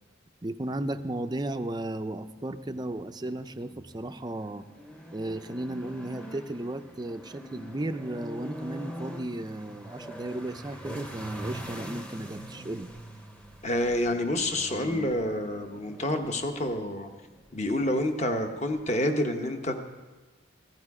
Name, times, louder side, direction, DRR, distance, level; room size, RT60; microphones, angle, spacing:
voice 1, 0.4-4.6 5.1-12.9, right 1 dB, 20° right, 9 dB, 0.4 m, -35 dB
sound 1, 2.4-19.0, right 1 dB, 5° left, 0.8 m, -44 dB
voice 2, 13.6-17.1 17.5-19.9, left 1 dB, 35° left, 5 dB, 1.0 m, -28 dB
15.0 x 11.0 x 4.8 m, 1.3 s
head